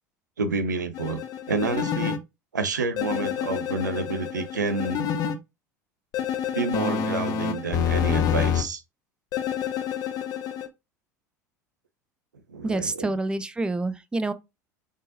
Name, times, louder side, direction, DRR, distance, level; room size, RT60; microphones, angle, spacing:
voice 1, 0.4-1.2 1.5-2.2 2.5-5.1 6.5-8.8 12.5-13.1, right 4 dB, 80° right, 0.6 m, -29 dB
sound 1, 0.9-2.2 3.0-5.4 6.1-8.6 9.3-10.7, left 8 dB, 45° left, 0.9 m, -27 dB
voice 2, 12.6-14.3, right 2 dB, 10° right, 0.5 m, -27 dB
5.1 x 3.7 x 2.6 m
figure-of-eight pair, 70°, 10 cm